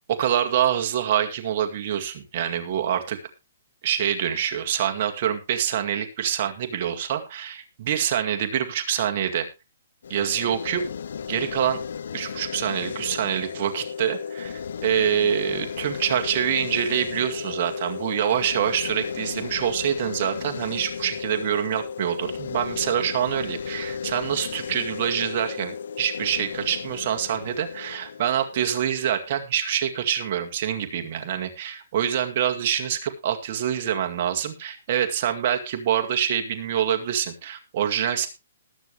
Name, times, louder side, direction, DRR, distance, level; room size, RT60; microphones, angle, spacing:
voice 1, 0.1-3.2 3.8-9.5 10.1-10.9 11.3-11.8 12.1-38.3, right 9 dB, 45° right, 5 dB, 2.1 m, -26 dB
sound 1, 10.0-29.1, left 6 dB, 70° left, 0.7 m, -34 dB
20.0 x 7.1 x 3.2 m, 0.26 s
hypercardioid pair, 160°, 0 cm